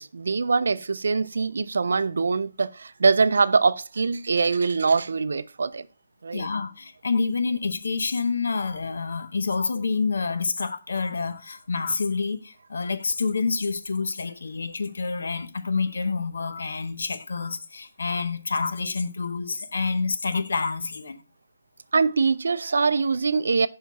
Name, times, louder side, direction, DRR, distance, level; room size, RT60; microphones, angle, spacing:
voice 1, 0.0-5.9 6.2-6.5 21.9-23.7, right 4 dB, 75° right, 0.4 m, -23 dB
voice 2, 6.3-21.2, left 4 dB, 80° left, 0.7 m, -28 dB
5.6 x 4.6 x 4.1 m
hypercardioid pair, 175°, 0 cm